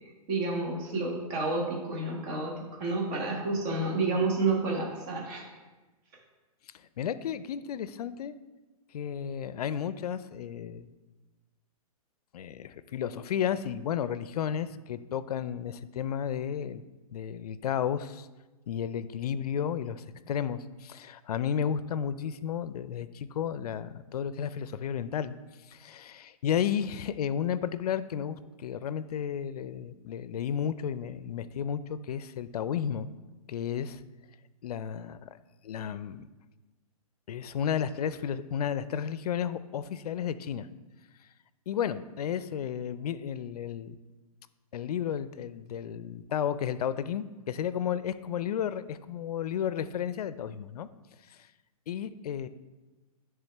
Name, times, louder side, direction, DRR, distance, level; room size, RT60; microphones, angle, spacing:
voice 1, 0.3-5.5, right 3 dB, 30° right, -1 dB, 1.2 m, -30 dB
voice 2, 7.0-8.3 8.9-10.9 12.3-16.8 17.1-18.3 18.7-25.3 25.7-33.1 33.5-34.0 34.6-35.3 35.6-36.3 37.3-40.7 41.7-44.0 44.7-50.9 51.3-51.4 51.9-52.5, left 8 dB, 85° left, 14 dB, 0.4 m, -33 dB
9.9 x 3.6 x 3.4 m, 1.2 s
hypercardioid pair, 160°, 19 cm